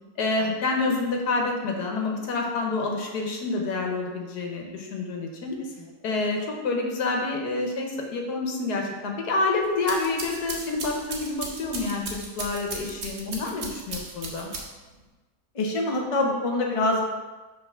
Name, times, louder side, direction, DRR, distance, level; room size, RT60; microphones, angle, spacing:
voice 1, 0.2-5.6 6.0-14.5, left 3 dB, 90° left, 1 dB, 1.6 m, -28 dB
sound 1, 9.6-14.9, right 3 dB, 50° right, 1.2 m, -37 dB
voice 2, 15.5-17.0, left 2 dB, 30° left, 0 dB, 0.7 m, -25 dB
5.7 x 3.7 x 5.6 m, 1.2 s
omnidirectional pair, 1.6 m